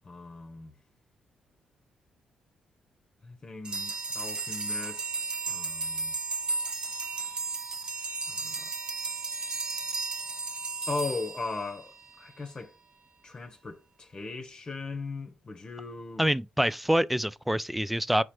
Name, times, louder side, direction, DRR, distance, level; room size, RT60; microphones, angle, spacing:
voice 1, 0.0-0.8 3.2-6.2 8.3-8.7 10.9-12.7 13.2-16.3, left 3 dB, 40° left, 1.0 m, -38 dB
sound 1, 3.6-12.2, right 3 dB, 45° right, 1.1 m, -34 dB
voice 2, 16.2-18.2, equal, 5° right, 0.5 m, -26 dB
4.8 x 4.3 x 4.8 m
hypercardioid pair, 45°, 2 cm